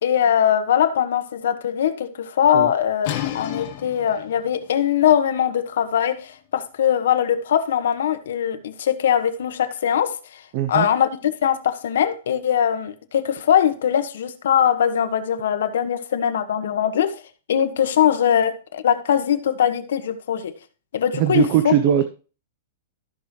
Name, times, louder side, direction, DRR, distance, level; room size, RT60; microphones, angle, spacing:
voice 1, 0.0-10.4 10.7-17.1 17.5-20.5 20.9-21.7, left 9 dB, 75° left, 1.3 m, -21 dB
sound 1, 3.0-8.7, left 12 dB, 40° left, 1.4 m, -35 dB
voice 2, 10.5-10.9 21.1-22.1, right 11 dB, 35° right, 0.7 m, -20 dB
14.0 x 6.0 x 3.2 m
supercardioid pair, 170°, 0 cm